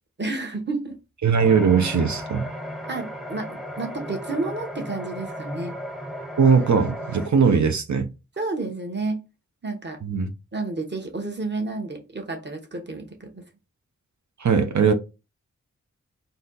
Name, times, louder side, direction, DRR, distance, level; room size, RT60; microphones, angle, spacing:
voice 1, 0.2-1.0 2.9-5.7 8.4-9.2 9.6-10.0 10.5-13.4, right 3 dB, 35° right, 1.1 m, -30 dB
voice 2, 1.2-2.5 6.4-8.1 10.0-10.3 14.4-14.9, right 6 dB, 70° right, 0.7 m, -19 dB
sound 1, 1.4-7.3, equal, ahead, 0.7 m, -35 dB
4.0 x 2.8 x 3.9 m
wide cardioid pair, 70°, 30 cm